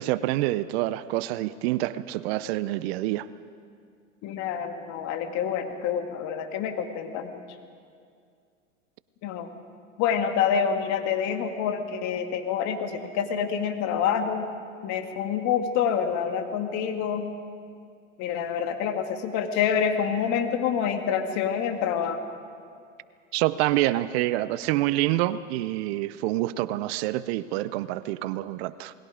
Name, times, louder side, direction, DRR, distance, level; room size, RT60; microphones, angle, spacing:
voice 1, 0.0-3.3 23.3-28.9, right 15 dB, 50° right, 16 dB, 0.7 m, -27 dB
voice 2, 4.2-7.4 9.2-9.5 10.0-14.5 14.8-17.3 18.2-22.2, left 7 dB, 45° left, 6 dB, 2.1 m, -27 dB
28.0 x 20.5 x 5.1 m, 2.3 s
hypercardioid pair, 115°, 40 cm